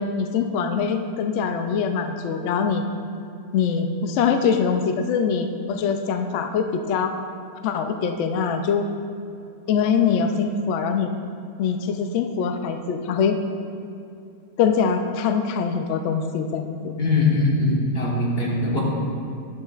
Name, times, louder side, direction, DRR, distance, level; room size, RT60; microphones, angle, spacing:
voice 1, 0.0-2.8 3.5-7.1 7.6-8.8 9.7-11.1 11.6-13.4 14.6-16.9, left 6 dB, 70° left, 6 dB, 0.7 m, -23 dB
voice 2, 17.0-18.8, left 2 dB, 40° left, -4 dB, 1.5 m, -21 dB
10.5 x 7.2 x 2.4 m, 2.6 s
omnidirectional pair, 1.7 m